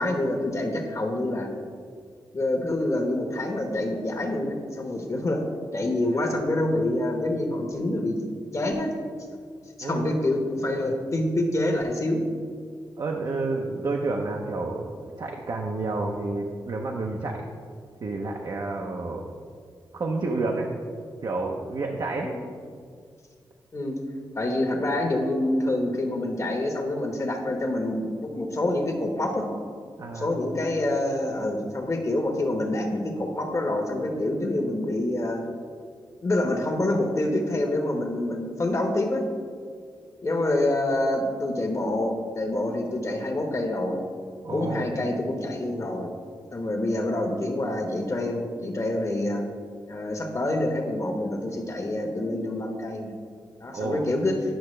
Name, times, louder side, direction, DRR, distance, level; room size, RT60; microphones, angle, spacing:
voice 1, 0.0-1.5 2.3-5.5 5.7-8.2 8.5-8.9 9.8-12.2 22.2-22.4 23.7-24.0 24.3-29.5 30.1-35.4 36.2-39.2 40.2-44.1 44.5-46.1 46.5-49.4 49.9-53.1 53.6-54.4, left 1 dB, 40° left, 3 dB, 1.2 m, -26 dB
voice 2, 9.8-10.2 13.0-17.5 18.0-19.3 19.9-20.7 21.2-22.3 30.0-30.3 44.4-44.9 53.7-54.0, right 3 dB, 55° right, 0 dB, 0.7 m, -30 dB
10.5 x 5.7 x 3.2 m, 2.1 s
cardioid pair, 75°, 8 cm